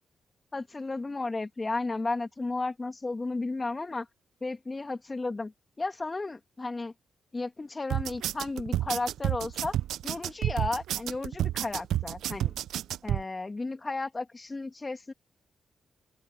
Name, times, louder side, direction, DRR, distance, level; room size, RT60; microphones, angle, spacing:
voice 1, 0.5-4.1 4.4-6.9 7.3-9.7 10.0-12.5 13.0-15.1, left 3 dB, 30° left, 2.5 m, -34 dB
sound 1, 7.9-13.2, right 12 dB, 80° right, 0.6 m, -30 dB
open air
supercardioid pair, 50°, 0 cm